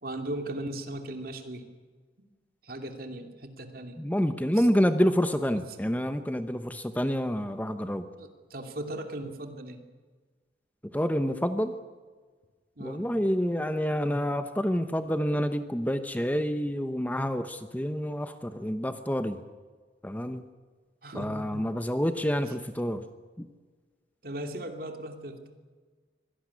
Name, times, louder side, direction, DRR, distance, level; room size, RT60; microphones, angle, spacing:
voice 1, 0.0-1.7 2.6-4.0 4.6-4.7 5.5-5.6 8.1-9.8 12.8-13.0 21.0-21.6 22.5-22.6 24.2-25.4, right 1 dB, 55° right, 5 dB, 2.7 m, -38 dB
voice 2, 4.0-8.1 10.9-11.8 12.8-19.4 20.0-20.4 21.1-23.1 23.4-23.5, equal, 10° left, 9 dB, 0.9 m, -28 dB
24.5 x 18.0 x 9.8 m, 1.4 s
head